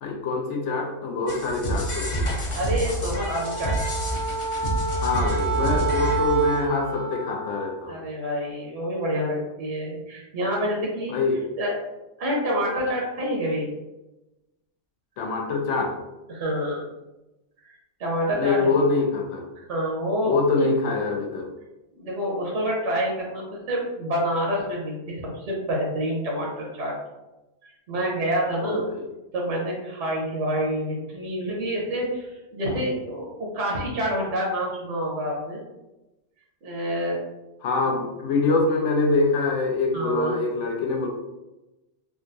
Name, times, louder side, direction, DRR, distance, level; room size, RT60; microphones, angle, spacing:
voice 1, 0.0-2.3 5.0-8.0 11.1-11.5 15.2-16.0 18.4-19.5 20.2-21.5 28.6-29.1 37.6-41.1, left 3 dB, 85° left, 1 dB, 0.9 m, -24 dB
sound 1, 1.3-6.7, right 1 dB, 40° left, 0.4 m, -28 dB
voice 2, 2.5-3.7 7.9-11.2 11.6-11.7 12.2-13.7 16.3-16.8 18.0-18.7 19.7-20.3 21.9-26.9 27.6-28.8 29.3-35.6 36.6-37.2 37.8-38.0 39.9-40.4, equal, 90° right, -2 dB, 1.1 m, -27 dB
Wind instrument woodwind instrument, 3.4-7.8, right 4 dB, 50° right, 0.5 m, -29 dB
3.7 x 2.3 x 2.6 m, 1.0 s
omnidirectional pair, 1.2 m